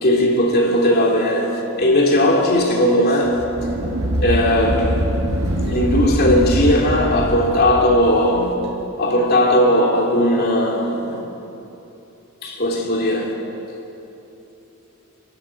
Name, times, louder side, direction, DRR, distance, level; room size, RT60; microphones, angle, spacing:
voice 1, 0.0-3.4 4.2-5.2 5.6-8.7 9.0-11.3 12.4-13.4, left 1 dB, 45° left, 3.0 m, -17 dB
sound 1, 3.3-8.1, equal, 85° right, 4.6 m, -23 dB
23.0 x 13.0 x 8.5 m
head